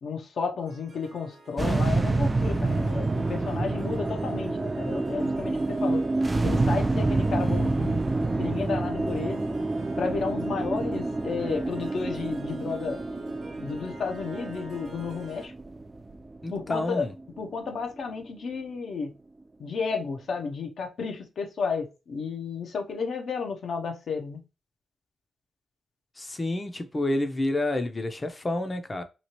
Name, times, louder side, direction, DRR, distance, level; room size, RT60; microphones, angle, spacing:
voice 1, 0.0-6.0 6.4-8.0 8.4-9.4 10.0-13.0 13.6-15.5 16.5-17.1 17.4-19.1 19.6-24.4, left 5 dB, 70° left, 0.6 m, -32 dB
Harp, 0.6-15.5, right 3 dB, 65° right, 0.8 m, -46 dB
sound 1, 1.6-18.0, right 2 dB, 30° right, 0.4 m, -28 dB
voice 2, 16.4-17.1 26.2-29.0, left 1 dB, 30° left, 0.6 m, -29 dB
3.0 x 2.4 x 2.9 m
supercardioid pair, 55°, 0 cm